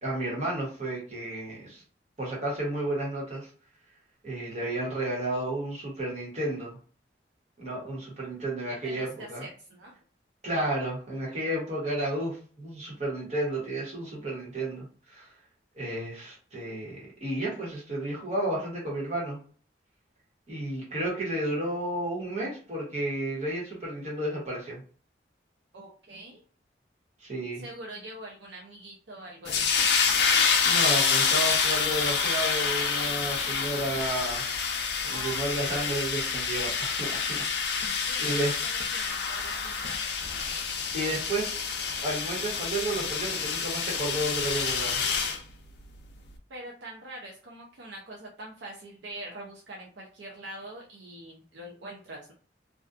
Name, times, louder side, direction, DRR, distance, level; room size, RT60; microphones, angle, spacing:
voice 1, 0.0-1.8 2.2-3.5 4.2-6.7 7.6-9.5 10.4-15.3 15.7-19.4 20.5-24.8 27.2-27.6 30.6-34.4 35.0-38.5 40.9-41.6 42.0-45.0, right 1 dB, 40° right, -4 dB, 1.1 m, -32 dB
voice 2, 8.7-9.9 25.7-26.4 27.6-29.8 35.1-35.4 35.7-36.4 38.1-40.4 46.5-52.3, right 1 dB, 75° right, -1 dB, 0.5 m, -44 dB
sound 1, 29.5-45.4, left 6 dB, 65° left, 0.4 m, -27 dB
2.5 x 2.3 x 2.4 m, 0.41 s
head